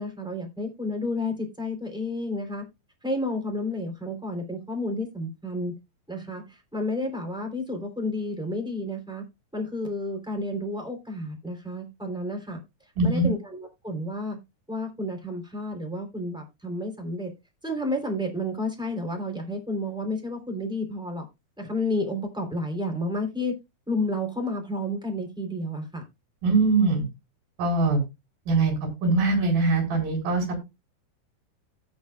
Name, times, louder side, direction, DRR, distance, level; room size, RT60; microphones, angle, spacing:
voice 1, 0.0-2.6 3.0-5.7 6.1-9.2 9.5-12.6 13.0-14.4 14.7-17.3 17.6-21.2 21.6-23.5 23.9-26.0, left 1 dB, ahead, 1 dB, 2.8 m, -31 dB
voice 2, 13.0-13.3 26.4-27.1 27.6-28.0 28.5-28.7 29.0-30.6, right 3 dB, 75° right, 2 dB, 6.0 m, -22 dB
16.5 x 6.4 x 2.3 m, 0.23 s
omnidirectional pair, 4.1 m